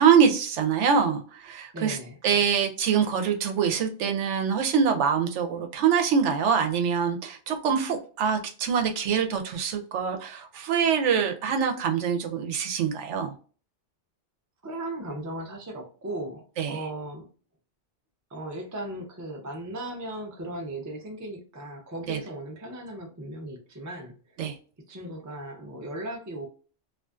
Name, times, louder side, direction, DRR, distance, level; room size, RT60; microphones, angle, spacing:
voice 1, 0.0-2.0 2.2-13.3 16.6-16.8 22.1-22.2 24.4-24.6, right 7 dB, 80° right, 5 dB, 0.9 m, -24 dB
voice 2, 1.7-2.2 14.6-17.3 18.3-24.4 24.9-26.5, right 1 dB, 30° right, 1 dB, 0.3 m, -37 dB
2.5 x 2.5 x 2.3 m, 0.39 s
omnidirectional pair, 1.2 m